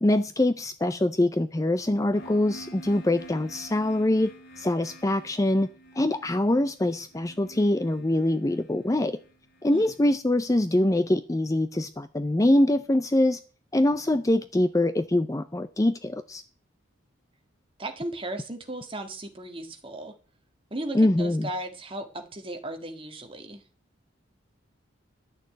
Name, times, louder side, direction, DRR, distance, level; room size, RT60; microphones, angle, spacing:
voice 1, 0.0-4.3 4.6-5.7 5.9-9.2 9.6-13.4 13.7-16.4 20.9-21.5, left 1 dB, 15° left, 0.5 m, -24 dB
sound 1, 2.1-9.9, right 1 dB, 80° left, 2.6 m, -49 dB
voice 2, 17.8-20.1 20.7-23.6, right 1 dB, 25° right, 1.7 m, -36 dB
11.5 x 6.6 x 8.6 m
head